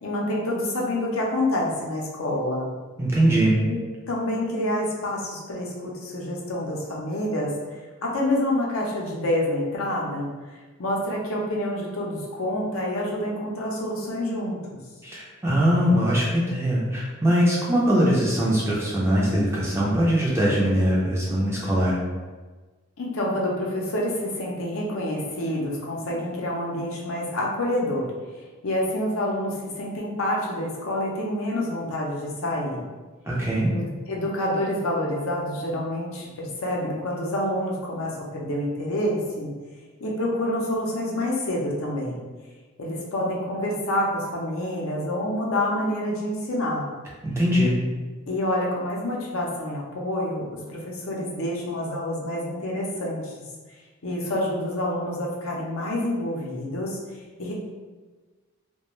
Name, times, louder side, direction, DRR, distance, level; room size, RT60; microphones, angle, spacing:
voice 1, 0.0-2.7 3.6-3.8 4.1-10.3 10.8-14.8 23.0-28.1 28.3-32.8 33.7-39.5 40.0-42.2 42.8-46.9 48.3-53.3 54.0-57.0 57.4-57.5, left 1 dB, 65° left, -3 dB, 0.5 m, -27 dB
voice 2, 3.0-3.6 15.0-22.0 33.3-33.7 47.2-47.7, equal, 10° right, -6 dB, 0.4 m, -21 dB
2.3 x 2.1 x 3.0 m, 1.3 s
head